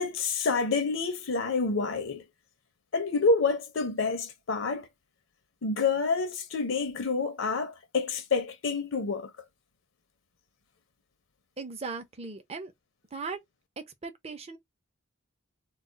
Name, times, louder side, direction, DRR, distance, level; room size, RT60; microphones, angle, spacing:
voice 1, 0.0-2.2 2.9-4.9 5.6-9.3, left 4 dB, 70° left, 0.6 m, -28 dB
voice 2, 11.6-12.7 13.1-13.4 13.8-14.6, right 4 dB, 30° right, 0.5 m, -38 dB
2.4 x 2.3 x 3.8 m
head